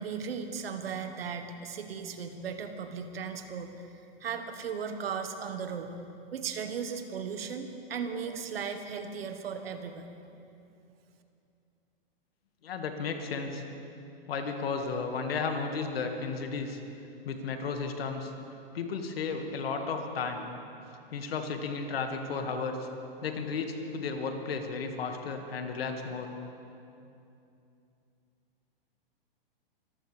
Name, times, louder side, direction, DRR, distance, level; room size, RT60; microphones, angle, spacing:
voice 1, 0.0-3.9 4.2-5.9 6.3-10.1, right 6 dB, 80° right, 7 dB, 1.5 m, -36 dB
voice 2, 12.6-13.6 14.3-16.8 17.2-18.3 18.7-20.4 21.1-22.9 23.2-26.3, left 4 dB, 80° left, 5 dB, 1.9 m, -33 dB
23.5 x 14.5 x 3.4 m, 2.7 s
hypercardioid pair, 130°, 29 cm